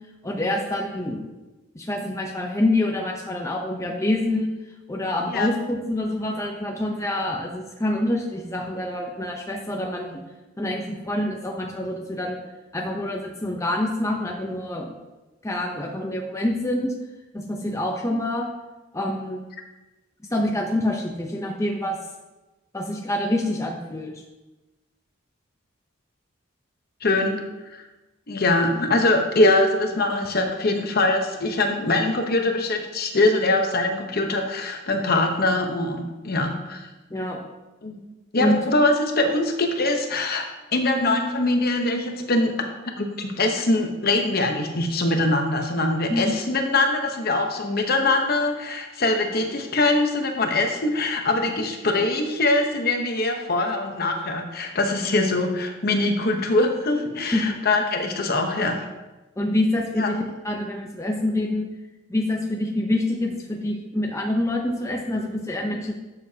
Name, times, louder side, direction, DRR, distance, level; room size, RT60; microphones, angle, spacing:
voice 1, 0.2-1.2 1.7-4.5 4.9-10.2 10.6-12.4 12.7-15.0 15.4-16.9 17.3-18.5 18.9-19.4 20.3-22.0 22.7-24.1 37.1-37.4 38.4-38.6 46.1-46.3 57.3-57.6 59.4-61.7 62.1-65.9, left 1 dB, 15° left, 0 dB, 0.7 m, -26 dB
voice 2, 27.0-27.4 27.7-27.8 28.3-36.9 37.8-38.0 38.3-42.5 43.0-58.8 60.0-60.1, left 2 dB, 50° left, 4 dB, 1.0 m, -23 dB
12.0 x 6.8 x 2.9 m, 1.1 s
head